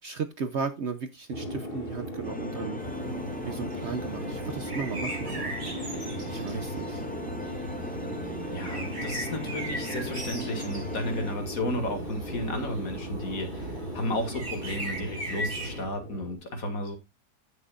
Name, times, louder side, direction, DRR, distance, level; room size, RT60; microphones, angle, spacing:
voice 1, 0.0-2.8 3.4-5.5 6.3-7.0, right 5 dB, 55° right, 0.9 m, -35 dB
sound 1, 1.3-16.3, equal, 35° left, 2.4 m, -37 dB
sound 2, 2.2-11.4, left 1 dB, 15° left, 0.3 m, -40 dB
sound 3, 2.8-15.8, right 1 dB, 70° right, 5.8 m, -39 dB
voice 2, 8.5-17.0, left 1 dB, 60° left, 2.5 m, -33 dB
15.5 x 6.5 x 2.4 m
omnidirectional pair, 1.7 m